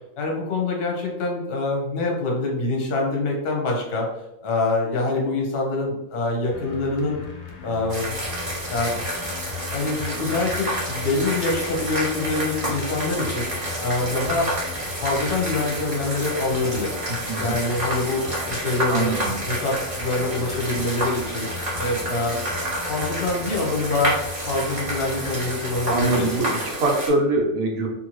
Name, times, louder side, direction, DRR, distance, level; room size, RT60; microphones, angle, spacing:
voice 1, 0.2-4.1 4.4-7.2 7.6-8.1 8.7-9.0 9.7-13.5 13.8-14.5 15.0-17.0 17.4-21.5 21.8-22.5 22.9-24.2 24.5-26.6, left 2 dB, 50° left, 0 dB, 0.9 m, -25 dB
sound 1, 6.5-26.4, left 5 dB, 85° left, 0.3 m, -38 dB
sound 2, 7.9-27.1, right 1 dB, 35° right, 0.9 m, -29 dB
voice 2, 17.1-17.5 18.9-19.4 25.9-27.9, right 2 dB, 80° right, 0 dB, 1.1 m, -23 dB
2.6 x 2.6 x 3.0 m, 0.88 s
omnidirectional pair, 1.4 m